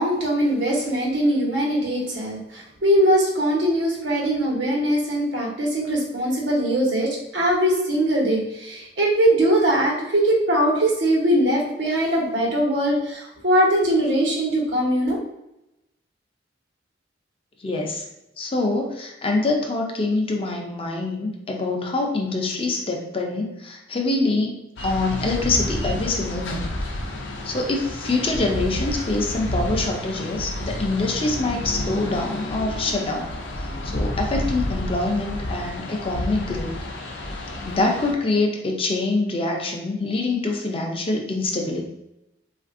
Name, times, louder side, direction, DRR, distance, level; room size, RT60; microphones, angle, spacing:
voice 1, 0.0-15.2, right 1 dB, 90° right, -3 dB, 1.1 m, -21 dB
voice 2, 17.6-18.1 18.4-26.7 27.4-36.7 37.6-41.8, left 2 dB, 30° left, 1 dB, 0.5 m, -25 dB
sound 1, 24.8-38.1, left 1 dB, 90° left, 0.5 m, -30 dB
3.3 x 2.5 x 2.5 m, 0.90 s
head